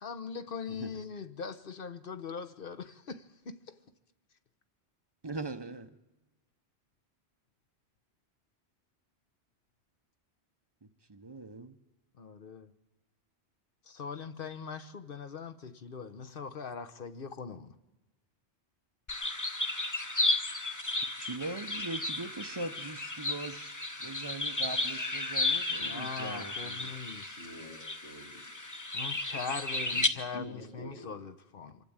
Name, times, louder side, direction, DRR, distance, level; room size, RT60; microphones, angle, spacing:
voice 1, 0.0-3.5 12.2-12.7 13.9-17.7 25.8-27.4 28.9-31.8, left 5 dB, 55° left, 1.1 m, -41 dB
voice 2, 5.2-5.9 11.1-11.8 21.2-23.7 24.0-26.9, right 3 dB, 25° right, 0.7 m, -41 dB
sound 1, 19.1-30.1, left 2 dB, 20° left, 0.9 m, -33 dB
voice 3, 27.4-28.4 29.9-30.1 30.3-31.2, left 1 dB, 85° left, 3.9 m, -46 dB
25.5 x 12.0 x 8.8 m
omnidirectional pair, 1.1 m